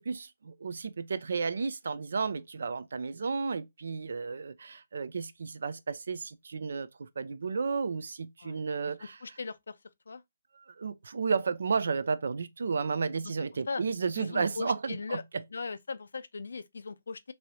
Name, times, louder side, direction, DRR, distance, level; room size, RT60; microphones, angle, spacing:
voice 1, 0.0-9.2 10.5-15.2, right 5 dB, 70° right, 0.4 m, -33 dB
voice 2, 9.2-9.8 10.1-10.2 13.7-13.8 14.2-15.2 15.5-17.3, left 4 dB, 80° left, 0.4 m, -38 dB
3.1 x 2.6 x 2.8 m
hypercardioid pair, 155°, 0 cm